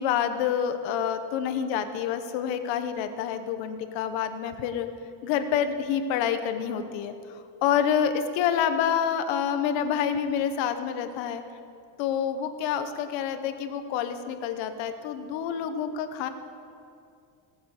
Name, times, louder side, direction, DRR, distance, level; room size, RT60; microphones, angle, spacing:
voice 1, 0.0-4.9 5.2-11.4 12.0-16.3, left 8 dB, 75° left, 9 dB, 1.2 m, -28 dB
17.5 x 8.7 x 6.5 m, 2.5 s
cardioid pair, 155°, 45 cm